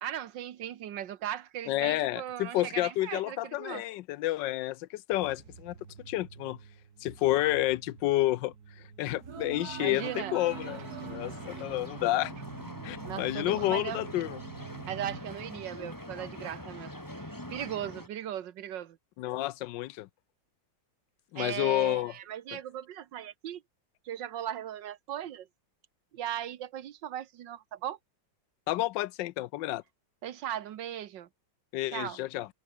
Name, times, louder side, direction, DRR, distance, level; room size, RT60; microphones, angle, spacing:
voice 1, 0.0-3.8 9.8-10.4 13.1-14.0 14.9-19.0 21.4-23.6 24.1-25.5 26.1-28.0 30.2-31.3 31.9-32.2, right 11 dB, 75° right, 1.6 m, -38 dB
voice 2, 1.7-5.8 6.1-6.6 7.0-8.5 9.0-12.3 12.8-14.4 19.2-20.1 21.3-22.1 28.7-29.8 31.7-32.5, left 15 dB, 80° left, 1.2 m, -30 dB
sound 1, 5.1-15.2, right 6 dB, 55° right, 2.2 m, -45 dB
sound 2, 10.5-18.1, equal, 10° left, 5.8 m, -43 dB
omnidirectional pair, 2.0 m